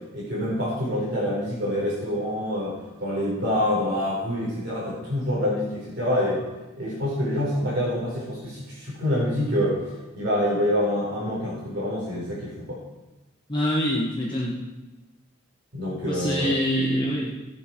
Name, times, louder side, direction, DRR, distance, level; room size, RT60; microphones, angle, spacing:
voice 1, 0.1-6.4 6.8-9.8 10.1-12.8 15.7-16.6, left 1 dB, 55° right, -6 dB, 4.6 m, -26 dB
voice 2, 13.5-14.6 16.0-17.3, equal, 20° left, -4 dB, 1.3 m, -25 dB
18.0 x 7.7 x 4.6 m, 1.1 s
head